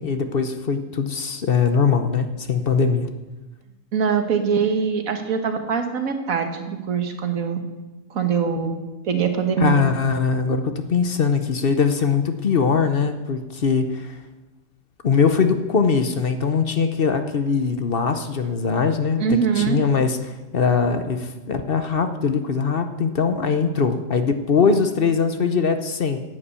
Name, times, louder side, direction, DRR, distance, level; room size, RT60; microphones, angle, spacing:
voice 1, 0.0-3.1 9.6-14.1 15.0-19.2 19.6-26.2, left 5 dB, 50° left, 8 dB, 1.0 m, -21 dB
voice 2, 3.9-7.6 8.1-8.8 9.0-9.8 19.2-19.8, right 6 dB, 85° right, 6 dB, 1.7 m, -23 dB
10.5 x 8.5 x 8.3 m, 1.1 s
omnidirectional pair, 1.4 m